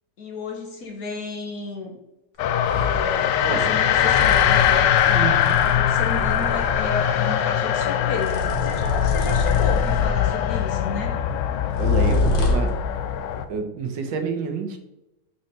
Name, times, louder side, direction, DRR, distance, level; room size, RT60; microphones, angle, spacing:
voice 1, 0.2-1.9 2.7-5.3 5.7-11.1, left 4 dB, 55° left, 0 dB, 1.6 m, -32 dB
sound 1, 2.4-13.4, left 10 dB, 85° left, 1.3 m, -22 dB
sound 2, 2.7-3.0 3.9-6.9 8.1-10.4 11.7-12.8, left 3 dB, 40° left, 0.9 m, -25 dB
voice 2, 5.1-5.6 11.8-12.7 13.5-14.8, right 5 dB, 85° right, 6 dB, 1.7 m, -28 dB
6.7 x 5.6 x 4.3 m, 0.94 s
omnidirectional pair, 1.9 m